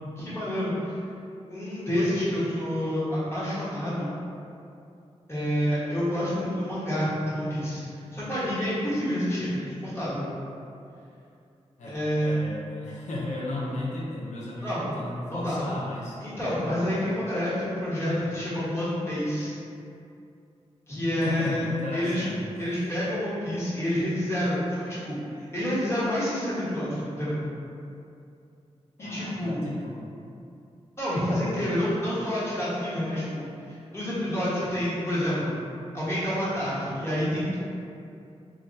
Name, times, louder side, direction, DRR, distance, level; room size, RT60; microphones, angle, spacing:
voice 1, 0.2-0.9 1.5-4.2 5.3-10.2 11.8-12.3 14.6-14.9 15.3-15.7 16.2-19.5 20.9-21.6 21.9-22.3 22.6-27.4 29.0-29.6 31.0-35.6 35.9-37.6, equal, 20° left, -11 dB, 1.1 m, -28 dB
voice 2, 11.8-16.2 16.6-16.9 21.2-22.9 29.0-30.0, left 2 dB, 90° left, -5 dB, 0.4 m, -35 dB
2.3 x 2.2 x 3.9 m, 2.6 s
wide cardioid pair, 100°, 12 cm